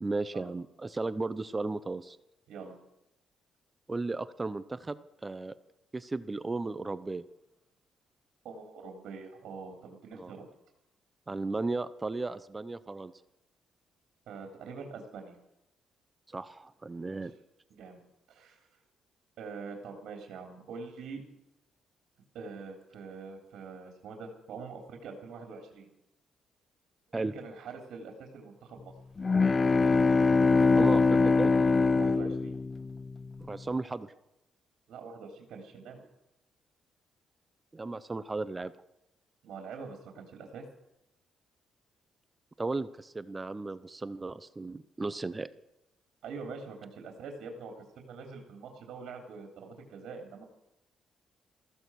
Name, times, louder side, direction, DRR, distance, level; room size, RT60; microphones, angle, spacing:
voice 1, 0.0-2.2 3.9-5.5 5.9-7.2 10.1-10.3 11.3-13.1 16.3-17.3 27.1-27.3 30.8-31.6 33.5-34.1 37.7-38.7 42.6-45.5, right 3 dB, 20° right, 15 dB, 0.8 m, -35 dB
voice 2, 8.4-10.5 14.3-15.4 17.1-17.3 17.8-18.0 18.3-18.7 19.4-21.2 22.3-25.9 27.1-28.9 32.0-32.6 34.9-36.0 39.4-40.6 46.2-50.4, right 4 dB, 75° right, 2 dB, 3.3 m, -44 dB
sound 1, 29.2-33.2, left 3 dB, 30° left, 0.6 m, -23 dB
15.0 x 15.0 x 6.3 m, 0.86 s
cardioid pair, 90°, 0 cm